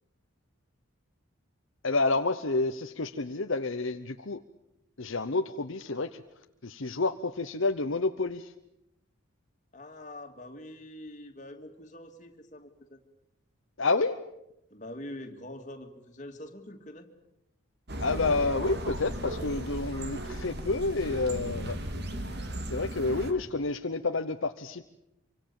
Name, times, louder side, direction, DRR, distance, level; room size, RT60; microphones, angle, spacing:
voice 1, 1.8-4.4 5.0-6.2 6.6-8.5 13.8-14.2 18.0-21.8 22.7-24.8, left 3 dB, 60° left, 7 dB, 0.9 m, -29 dB
voice 2, 9.7-13.0 14.7-17.1, left 1 dB, 35° left, 4 dB, 2.6 m, -44 dB
sound 1, 17.9-23.3, right 1 dB, 50° right, 2.7 m, -36 dB
26.0 x 24.5 x 7.2 m, 0.84 s
head